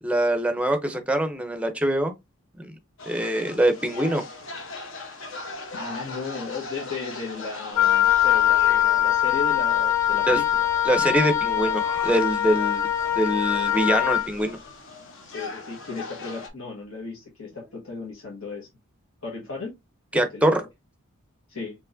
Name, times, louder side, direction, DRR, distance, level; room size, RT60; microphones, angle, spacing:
voice 1, 0.0-2.1 2.6-2.7 3.1-4.2 10.3-10.4 10.8-12.9 13.2-14.6 20.1-20.6, right 1 dB, 5° right, 0.5 m, -23 dB
sound 1, 3.0-16.5, left 3 dB, 65° left, 1.0 m, -40 dB
voice 2, 5.7-10.4 15.2-18.7 19.2-19.7 20.1-20.7 21.5-21.7, left 4 dB, 80° left, 1.3 m, -35 dB
Wind instrument woodwind instrument, 7.8-14.3, left 11 dB, 15° left, 1.0 m, -22 dB
4.6 x 3.0 x 2.5 m
head